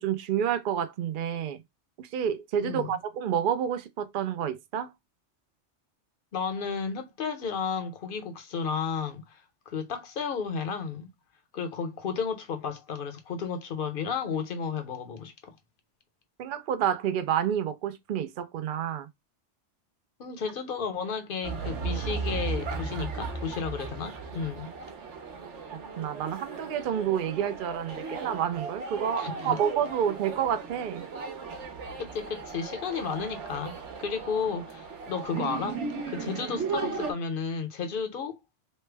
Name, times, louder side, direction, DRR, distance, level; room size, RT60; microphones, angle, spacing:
voice 1, 0.0-1.6 2.0-4.9 16.4-19.1 26.0-31.0, right 9 dB, 60° right, 0.6 m, -29 dB
voice 2, 2.6-3.0 6.3-11.1 11.5-15.5 20.2-24.7 29.2-29.6 32.0-38.4, left 5 dB, 55° left, 0.8 m, -33 dB
sound 1, 21.4-37.1, right 5 dB, 75° right, 1.1 m, -36 dB
3.2 x 2.1 x 3.3 m
omnidirectional pair, 1.2 m